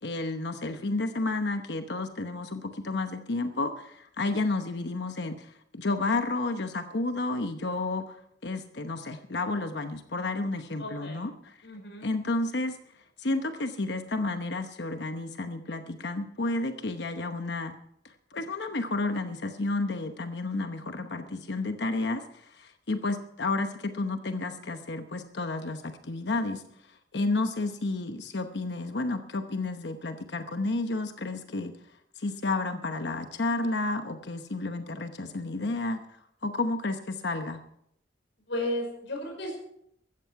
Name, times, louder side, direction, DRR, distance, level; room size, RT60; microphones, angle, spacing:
voice 1, 0.0-11.6 12.0-12.8 13.2-17.8 18.0-26.6 27.1-31.7 32.2-37.6, left 2 dB, 65° left, 7 dB, 1.0 m, -31 dB
voice 2, 10.8-11.2 11.6-12.1 38.5-39.6, left 1 dB, 85° left, 1 dB, 5.5 m, -34 dB
15.5 x 14.0 x 4.7 m, 0.71 s
head